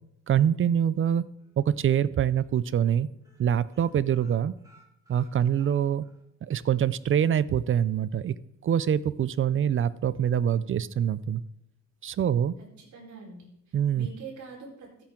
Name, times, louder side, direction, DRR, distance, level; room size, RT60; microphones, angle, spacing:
voice 1, 0.3-1.2 1.6-3.1 3.4-4.5 5.1-6.0 6.5-8.4 8.6-11.4 12.0-12.5 13.7-14.1, right 9 dB, 45° right, 18 dB, 0.5 m, -25 dB
sound 1, 1.4-2.0 2.3-2.5 2.8-3.0 3.2-6.2 6.6-6.7 7.0-7.1, right 1 dB, 10° right, 4.7 m, -61 dB
voice 2, 12.8-15.0, right 4 dB, 75° right, -2 dB, 4.7 m, -44 dB
15.5 x 8.7 x 3.8 m, 0.77 s
cardioid pair, 90°, 30 cm